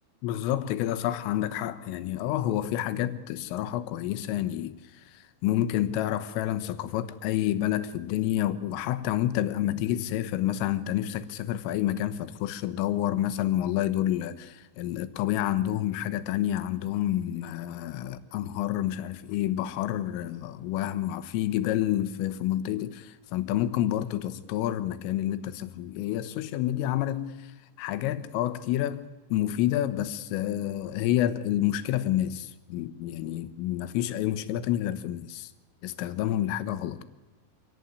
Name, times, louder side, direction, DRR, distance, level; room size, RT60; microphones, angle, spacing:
voice 1, 0.2-27.5 27.8-35.5 35.8-37.0, left 12 dB, 85° left, 3.7 m, -29 dB
26.5 x 17.5 x 9.6 m
omnidirectional pair, 5.7 m